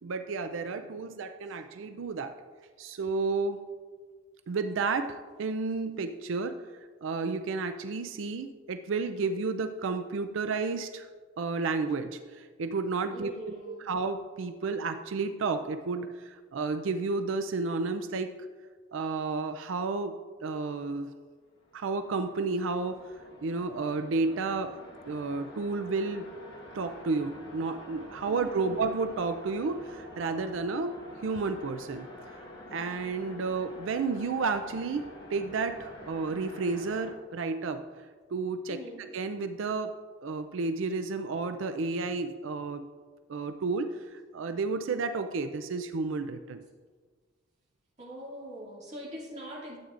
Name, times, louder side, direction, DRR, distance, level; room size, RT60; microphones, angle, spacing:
voice 1, 0.0-2.3 2.8-3.6 4.5-6.6 7.0-11.1 11.4-18.3 18.9-21.1 21.7-23.0 23.4-24.8 25.1-26.3 26.7-31.0 31.2-32.1 32.7-37.8 38.3-39.9 40.2-42.8 43.3-46.6, right 4 dB, 75° right, 8 dB, 0.4 m, -31 dB
voice 2, 13.1-13.9 28.3-28.8 38.7-39.0 48.0-49.8, equal, 35° right, -4 dB, 2.3 m, -42 dB
sound 1, 21.5-37.1, equal, 55° left, 1.5 m, -48 dB
12.5 x 8.0 x 2.5 m, 1.5 s
head